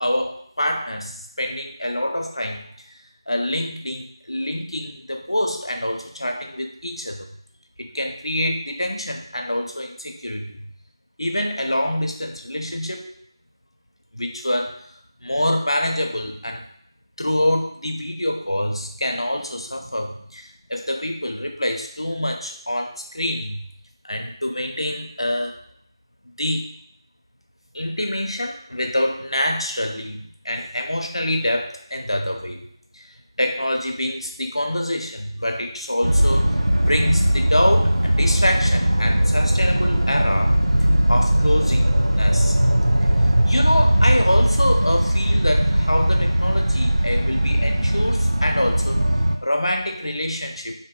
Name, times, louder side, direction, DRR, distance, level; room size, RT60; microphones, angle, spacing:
voice 1, 0.0-2.7 3.3-7.3 7.8-10.7 11.2-13.1 14.1-14.7 15.2-16.7 17.2-23.7 24.0-25.6 26.4-26.6 27.7-32.6 32.9-33.0 33.4-36.6 36.8-40.6 41.1-42.6 43.5-49.0 49.4-50.7, left 1 dB, 85° left, 3 dB, 0.6 m, -25 dB
sound 1, 36.0-49.4, right 1 dB, 85° right, 0.4 m, -19 dB
3.5 x 2.7 x 2.2 m, 0.67 s
figure-of-eight pair, 175°, 3 cm